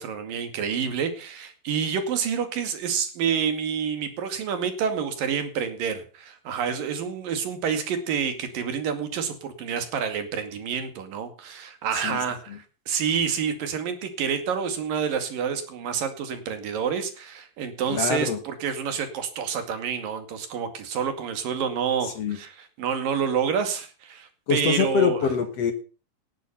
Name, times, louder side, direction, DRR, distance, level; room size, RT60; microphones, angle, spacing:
voice 1, 0.0-25.3, right 7 dB, 75° right, 8 dB, 3.9 m, -28 dB
voice 2, 17.9-18.4 22.0-22.4 24.5-25.7, left 6 dB, 55° left, 9 dB, 2.1 m, -25 dB
18.5 x 10.0 x 5.6 m, 0.36 s
omnidirectional pair, 4.0 m